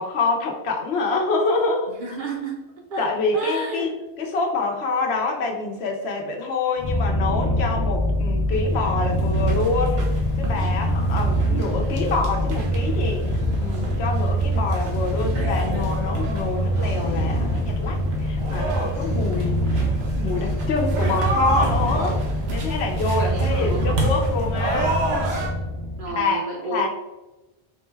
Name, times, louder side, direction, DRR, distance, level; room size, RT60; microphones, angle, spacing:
voice 1, 0.0-2.2 3.0-19.8 20.2-22.2 22.5-25.0 26.1-26.9, left 3 dB, 75° left, 1 dB, 0.9 m, -26 dB
voice 2, 2.0-3.1 3.3-4.0 23.1-23.9 26.0-26.9, right 2 dB, 55° right, 1 dB, 0.7 m, -31 dB
Purr, 6.8-26.1, equal, 45° left, 0.4 m, -24 dB
sound 1, 8.5-25.5, right 2 dB, 90° right, 1.1 m, -30 dB
3.8 x 2.2 x 3.2 m, 1.0 s
omnidirectional pair, 1.1 m